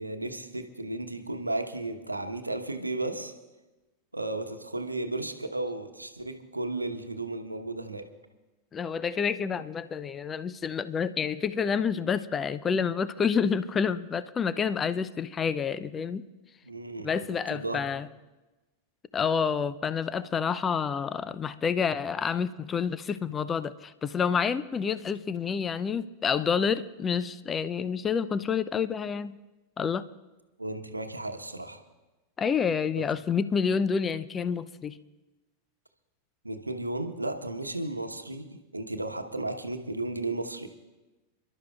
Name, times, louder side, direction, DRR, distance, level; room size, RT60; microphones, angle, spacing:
voice 1, 0.0-3.3 4.1-8.0 16.6-17.8 30.6-31.8 32.9-33.0 36.4-40.7, right 2 dB, 85° right, 6 dB, 1.0 m, -34 dB
voice 2, 8.7-16.2 17.0-18.1 19.1-29.3 29.8-30.1 32.4-35.0, left 6 dB, 20° left, 15 dB, 0.5 m, -28 dB
29.0 x 12.0 x 2.4 m, 1.1 s
figure-of-eight pair, 90°, 0 cm